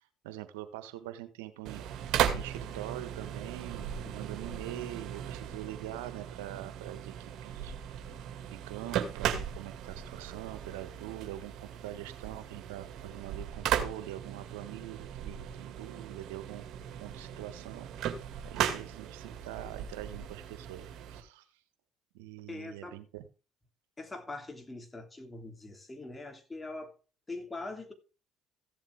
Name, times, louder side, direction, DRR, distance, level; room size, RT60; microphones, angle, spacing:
voice 1, 0.2-1.8 2.3-7.7 8.1-8.2 8.5-16.6 17.0-17.9 18.4-21.4 22.1-23.2, right 14 dB, 85° right, 1.4 m, -44 dB
sound 1, 1.6-21.2, right 9 dB, 65° right, 2.2 m, -37 dB
voice 2, 22.5-23.0 24.0-26.9 27.3-27.9, left 2 dB, 20° left, 3.2 m, -42 dB
15.5 x 7.4 x 3.6 m
supercardioid pair, 70°, 0 cm